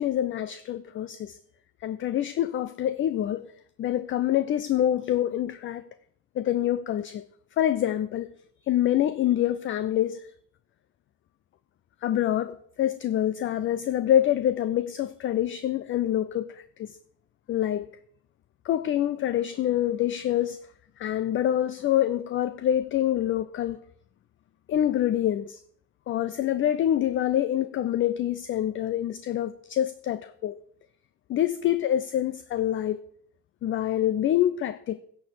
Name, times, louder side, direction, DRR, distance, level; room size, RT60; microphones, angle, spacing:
voice 1, 0.0-1.4 1.8-3.5 3.8-5.9 6.4-7.2 7.6-8.3 8.7-10.3 12.0-17.0 17.5-17.9 18.6-20.6 21.0-23.8 24.7-25.6 26.1-30.6 31.3-33.0 33.6-35.0, left 11 dB, 25° left, 0.4 m, -26 dB
16.5 x 6.7 x 4.7 m
figure-of-eight pair, 55°, 48 cm